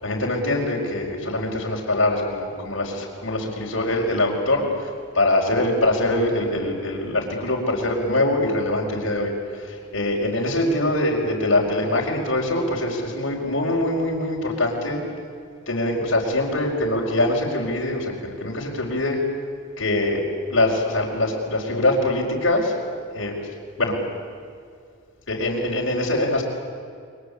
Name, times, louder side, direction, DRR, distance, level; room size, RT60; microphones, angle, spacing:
voice 1, 0.0-4.9 5.1-9.3 9.6-15.0 15.7-19.2 19.8-20.2 20.5-22.7 23.1-23.5 23.8-24.0 25.3-26.4, left 1 dB, 85° left, -3 dB, 5.0 m, -23 dB
29.5 x 24.0 x 8.4 m, 2.3 s
head